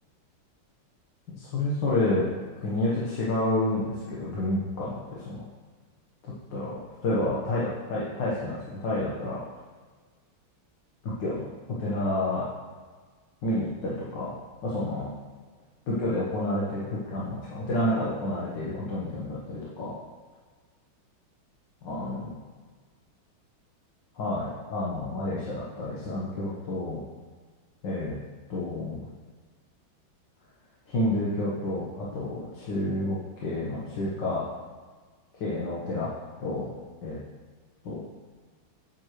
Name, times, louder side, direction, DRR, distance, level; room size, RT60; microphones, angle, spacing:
voice 1, 1.4-2.3 2.6-5.4 6.5-9.4 11.0-11.5 11.8-12.4 13.4-14.3 14.6-15.1 15.9-20.0 21.8-22.4 24.1-27.0 27.8-28.2 28.5-29.1 30.9-34.4 35.3-36.1 36.4-36.7 37.0-37.2 37.8-38.0, left 1 dB, 65° left, -7 dB, 2.0 m, -29 dB
9.3 x 7.9 x 3.2 m, 1.5 s
omnidirectional pair, 2.2 m